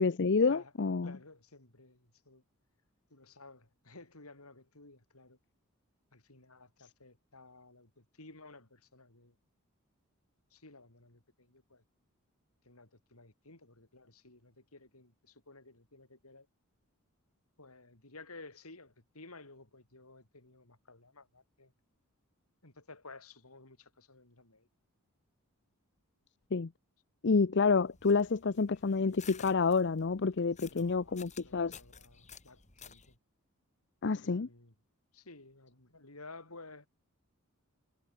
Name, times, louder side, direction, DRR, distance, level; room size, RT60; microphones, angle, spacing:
voice 1, 0.0-1.2 26.5-26.7 27.2-31.7 34.0-34.5, left 4 dB, 55° left, 0.6 m, -28 dB
voice 2, 1.0-2.4 3.1-5.4 6.1-9.3 10.5-11.8 12.6-16.5 17.6-21.7 22.6-24.7 30.7-33.2 34.0-34.7 35.1-36.9, left 3 dB, 85° left, 5.7 m, -55 dB
sound 1, 27.8-33.2, left 7 dB, 35° left, 3.2 m, -54 dB
head